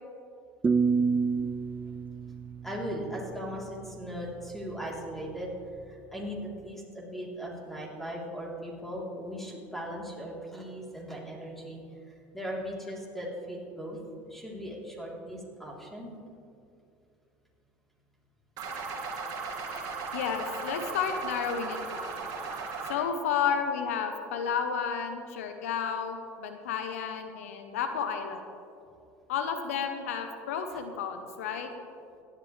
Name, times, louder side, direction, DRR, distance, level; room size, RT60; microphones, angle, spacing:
sound 1, 0.6-3.6, right 5 dB, 25° right, 0.5 m, -28 dB
voice 1, 2.6-5.5 5.9-11.8 12.3-14.0 14.2-16.1, equal, 5° left, -3 dB, 3.5 m, -38 dB
sound 2, 18.6-23.0, right 4 dB, 55° right, 2.1 m, -36 dB
voice 2, 20.1-22.2 22.9-28.4 29.3-31.7, left 7 dB, 85° left, 7 dB, 0.8 m, -32 dB
17.0 x 11.0 x 3.3 m, 2.6 s
hypercardioid pair, 75°, 8 cm